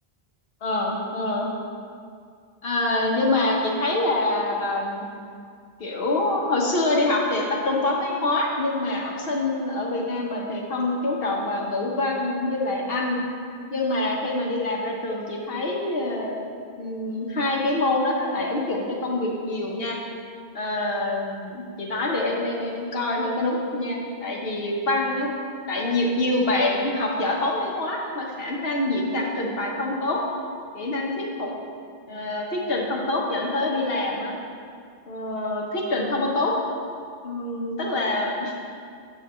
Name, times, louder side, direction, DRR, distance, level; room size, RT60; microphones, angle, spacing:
voice 1, 0.6-1.5 2.6-5.1 5.8-13.2 13.7-16.4 16.8-20.0 20.5-25.3 25.7-30.2 30.7-31.5 32.1-34.4 35.1-36.5 37.2-38.6, left 2 dB, 65° left, -1 dB, 1.3 m, -25 dB
8.0 x 7.5 x 3.1 m, 2.2 s
omnidirectional pair, 1.1 m